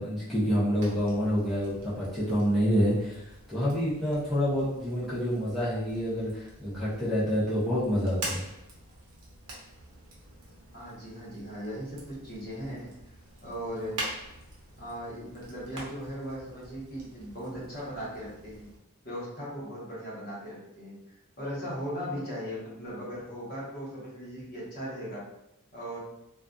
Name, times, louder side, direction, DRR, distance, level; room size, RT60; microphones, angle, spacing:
voice 1, 0.0-8.4, equal, ahead, -11 dB, 0.6 m, -27 dB
Fire, 0.7-18.8, right 1 dB, 80° right, 0.7 m, -45 dB
voice 2, 10.7-12.9 13.4-14.0 14.8-18.7 19.0-25.3 25.7-26.0, equal, 45° left, -7 dB, 1.0 m, -38 dB
2.5 x 2.3 x 2.2 m, 0.84 s
head